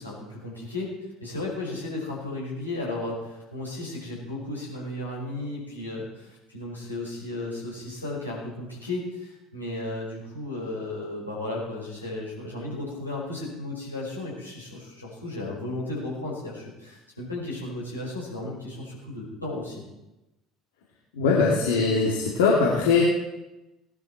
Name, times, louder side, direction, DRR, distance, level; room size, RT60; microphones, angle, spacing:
voice 1, 0.0-19.8, left 2 dB, 90° left, -5 dB, 5.3 m, -34 dB
voice 2, 21.2-23.0, left 4 dB, 65° left, -3 dB, 2.3 m, -21 dB
18.0 x 12.0 x 4.5 m, 0.97 s
figure-of-eight pair, 60°, 0 cm